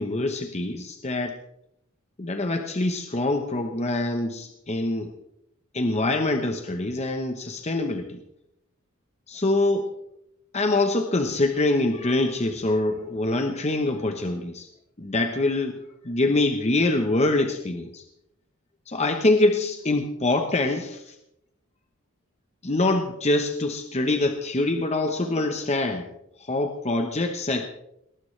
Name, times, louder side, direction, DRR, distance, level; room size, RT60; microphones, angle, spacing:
voice 1, 0.0-1.4 2.2-5.1 5.7-8.2 9.3-9.9 10.5-14.7 15.0-15.8 16.0-18.0 18.9-21.1 22.6-26.1 26.4-27.7, left 2 dB, 30° left, 5 dB, 1.0 m, -24 dB
19.0 x 19.0 x 3.3 m, 0.80 s
head